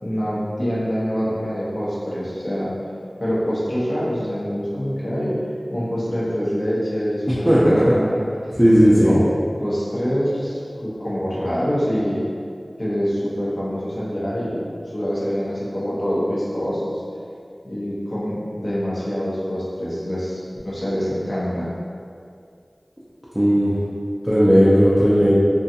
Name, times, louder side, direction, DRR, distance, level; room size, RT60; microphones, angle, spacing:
voice 1, 0.0-2.7 3.2-5.4 5.7-8.2 8.9-9.3 9.6-12.2 12.8-14.6 14.9-17.0 17.6-21.7, equal, 60° left, -9 dB, 0.8 m, -25 dB
voice 2, 7.3-8.0 8.6-9.1 23.3-23.7 24.2-25.3, equal, 5° right, -10 dB, 0.4 m, -15 dB
2.4 x 2.3 x 2.7 m, 2.3 s
wide cardioid pair, 45°, 0 cm